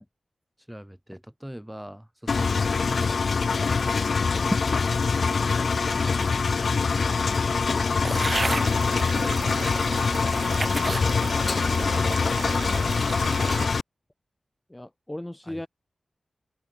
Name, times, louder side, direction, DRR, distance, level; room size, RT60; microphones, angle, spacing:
voice 1, 0.7-3.7 5.3-7.7 15.4-15.7, equal, 5° right, 6.7 m, -43 dB
Engine, 2.3-13.8, left 5 dB, 65° left, 0.4 m, -24 dB
sound 1, 8.0-8.7 9.5-9.6 10.3-11.1 11.6-12.0, right 3 dB, 35° right, 0.8 m, -31 dB
sound 2, 8.1-13.7, right 5 dB, 70° right, 2.4 m, -36 dB
voice 2, 14.7-15.7, left 1 dB, 15° left, 2.9 m, -35 dB
wide cardioid pair, 95°, 0 cm